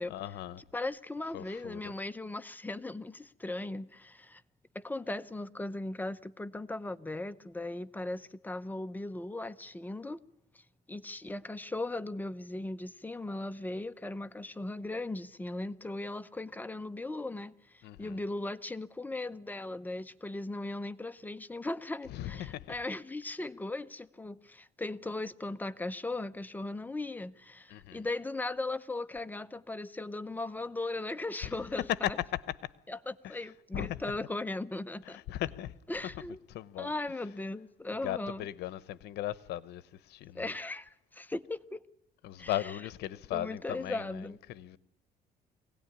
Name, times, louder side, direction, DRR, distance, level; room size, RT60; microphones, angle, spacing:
voice 1, 0.1-0.6 1.3-1.9 17.8-18.2 22.1-22.7 27.7-28.1 31.4-31.5 32.0-32.4 33.2-33.3 33.7-34.0 35.1-35.7 36.5-36.9 37.9-40.5 42.2-44.8, left 13 dB, 80° left, 0.9 m, -37 dB
voice 2, 0.7-4.4 4.7-10.2 10.5-10.6 10.9-32.2 32.9-35.2 35.9-36.4 36.8-38.5 40.3-41.8 42.4-42.8 43.3-44.4, left 2 dB, 10° left, 0.8 m, -38 dB
23.0 x 17.5 x 9.9 m
cardioid pair, 110°, 17 cm